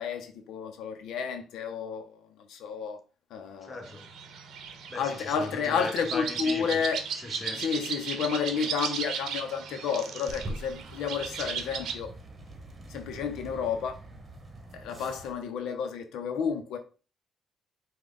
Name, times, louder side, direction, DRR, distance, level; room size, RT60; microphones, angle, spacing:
voice 1, 0.0-2.2 2.5-3.0 3.3-3.8 4.9-7.0 7.6-12.1 12.9-14.0 14.7-16.8, left 6 dB, 85° left, 0.5 m, -31 dB
voice 2, 3.6-4.1 4.9-6.8 7.1-7.7, left 2 dB, 20° left, 0.9 m, -38 dB
sound 1, 3.8-11.9, right 7 dB, 75° right, 0.7 m, -36 dB
sound 2, 10.3-15.3, right 1 dB, 30° right, 1.0 m, -44 dB
4.7 x 2.2 x 3.8 m
cardioid pair, 90°, 0 cm